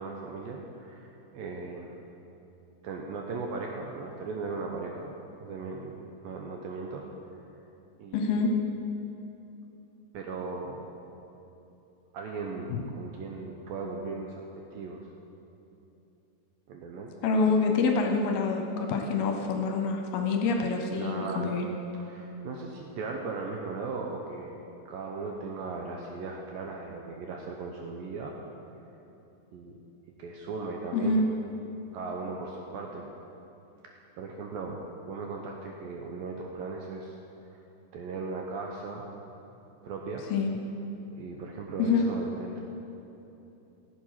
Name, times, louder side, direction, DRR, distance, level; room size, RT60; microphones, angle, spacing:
voice 1, 0.0-2.0 2.8-5.1 5.4-7.0 8.0-8.5 10.1-10.9 12.1-15.1 16.7-17.1 21.0-21.5 22.1-24.6 24.9-28.4 29.5-29.8 30.2-31.2 31.9-33.1 34.2-34.8 35.1-37.2 37.9-39.1 39.8-40.2 41.2-42.6, right 4 dB, 75° right, 0 dB, 2.2 m, -37 dB
voice 2, 8.1-8.5 12.7-12.8 17.2-21.7 30.9-31.2 40.3-40.5 41.8-42.0, left 4 dB, 75° left, 3 dB, 2.5 m, -26 dB
15.0 x 7.8 x 5.7 m, 3.0 s
omnidirectional pair, 4.8 m